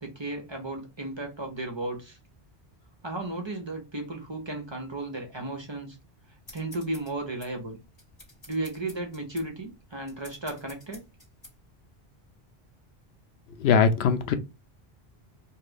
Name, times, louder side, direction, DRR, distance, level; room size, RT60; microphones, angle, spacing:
voice 1, 0.0-2.2 3.0-6.0 6.5-7.8 8.5-11.0, right 2 dB, 30° right, 0.7 m, -34 dB
sound 1, 6.5-11.6, left 1 dB, 40° left, 1.7 m, -51 dB
voice 2, 13.6-14.3, left 6 dB, 85° left, 0.8 m, -21 dB
2.7 x 2.5 x 3.3 m
omnidirectional pair, 1.0 m